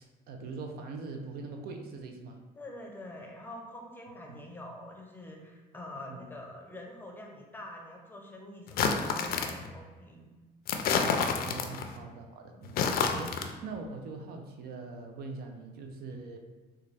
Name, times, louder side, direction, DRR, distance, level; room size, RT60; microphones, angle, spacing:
voice 1, 0.0-2.4 4.3-4.4 6.1-6.2 11.0-16.4, right 3 dB, 70° right, 4 dB, 0.5 m, -42 dB
voice 2, 2.6-10.3 11.7-11.8 12.5-12.6, left 1 dB, 10° left, 0 dB, 0.6 m, -45 dB
sound 1, 8.7-9.7 10.7-11.9 12.6-13.5, left 5 dB, 60° left, 0.4 m, -29 dB
3.8 x 2.3 x 3.2 m, 1.3 s
cardioid pair, 110°, 17 cm